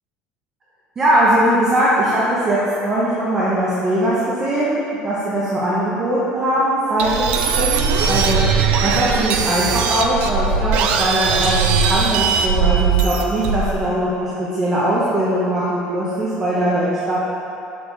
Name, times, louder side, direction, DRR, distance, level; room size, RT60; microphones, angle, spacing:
voice 1, 1.0-17.1, right 1 dB, 20° right, -8 dB, 0.9 m, -20 dB
sound 1, 7.0-13.8, right 6 dB, 55° right, 0.4 m, -19 dB
6.9 x 6.4 x 3.3 m, 2.9 s
cardioid pair, 165°, 3 cm